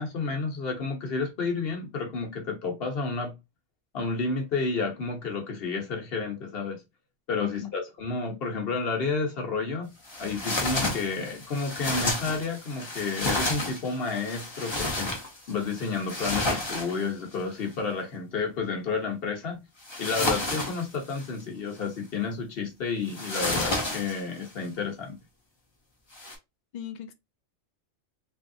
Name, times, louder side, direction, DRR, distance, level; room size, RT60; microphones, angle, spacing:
voice 1, 0.0-3.3 3.9-6.8 7.3-9.9 10.2-15.1 15.5-19.6 20.0-25.2, left 4 dB, 50° left, 1.1 m, -31 dB
sound 1, 10.0-17.3 19.8-21.4 23.1-24.5 26.1-26.3, left 2 dB, 25° left, 0.7 m, -31 dB
voice 2, 26.7-27.1, left 11 dB, 85° left, 0.4 m, -37 dB
3.2 x 2.7 x 2.5 m
omnidirectional pair, 1.3 m